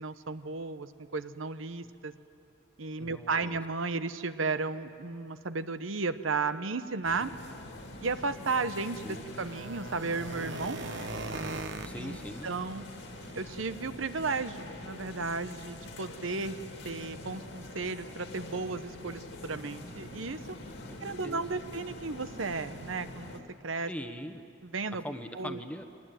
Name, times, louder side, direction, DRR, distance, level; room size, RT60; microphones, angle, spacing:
voice 1, 0.0-2.1 2.8-7.3 8.0-10.8 12.0-12.2 12.4-12.8 13.4-16.6 16.8-20.4 21.0-23.4 23.6-23.9 24.7-25.0 25.3-25.6, right 4 dB, 85° right, 11 dB, 0.9 m, -34 dB
voice 2, 3.0-3.6 9.0-9.2 11.8-12.5 20.9-21.0 21.2-21.6 23.9-24.4 25.0-25.8, equal, 5° left, 7 dB, 1.1 m, -41 dB
sound 1, 7.0-23.4, left 2 dB, 60° left, 2.4 m, -45 dB
sound 2, 8.8-13.9 14.3-14.4 14.9-15.0 15.3-15.4 15.8-15.9, right 3 dB, 65° right, 1.1 m, -41 dB
23.5 x 19.0 x 9.2 m, 2.5 s
head